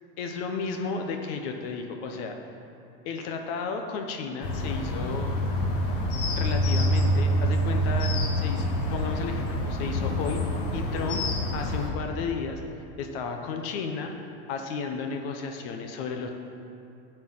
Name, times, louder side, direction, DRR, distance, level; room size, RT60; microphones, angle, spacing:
voice 1, 0.2-2.3 3.0-5.3 6.3-10.4 10.7-11.2 11.5-12.6 13.0-14.1 14.5-16.3, left 5 dB, 65° left, 4 dB, 0.9 m, -33 dB
sound 1, 4.4-11.9, equal, 45° left, 1.4 m, -26 dB
9.4 x 4.6 x 7.5 m, 2.7 s
supercardioid pair, 150°, 31 cm